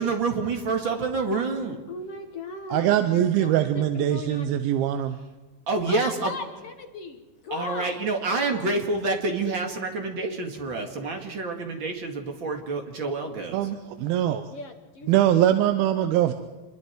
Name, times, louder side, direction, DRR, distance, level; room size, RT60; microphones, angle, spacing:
voice 1, 0.0-1.8 5.7-6.3 7.5-13.6, right 3 dB, 40° right, 3 dB, 2.3 m, -27 dB
voice 2, 1.9-4.5 5.9-8.0 8.4-8.7 14.5-15.3, left 4 dB, 60° left, 5 dB, 1.5 m, -37 dB
voice 3, 2.7-5.2 13.5-14.4 15.1-16.3, right 11 dB, 80° right, 9 dB, 2.6 m, -22 dB
26.5 x 22.0 x 4.6 m, 1.3 s
omnidirectional pair, 4.4 m